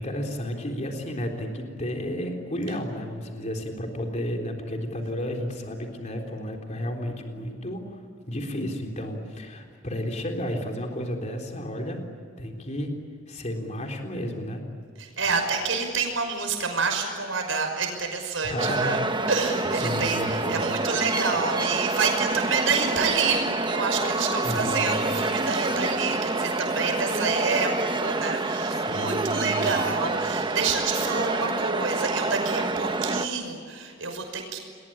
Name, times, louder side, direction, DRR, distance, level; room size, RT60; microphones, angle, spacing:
voice 1, 0.0-8.0 8.2-12.0 12.4-13.0 13.3-14.6 18.4-19.1 19.8-20.6 24.4-25.1 28.8-29.7, equal, 35° left, 2 dB, 3.7 m, -32 dB
voice 2, 15.0-19.0 19.3-34.6, right 4 dB, 85° right, 4 dB, 5.8 m, -28 dB
sound 1, 18.6-33.3, right 2 dB, 25° right, 1.1 m, -27 dB
30.0 x 21.5 x 8.7 m, 2.2 s
head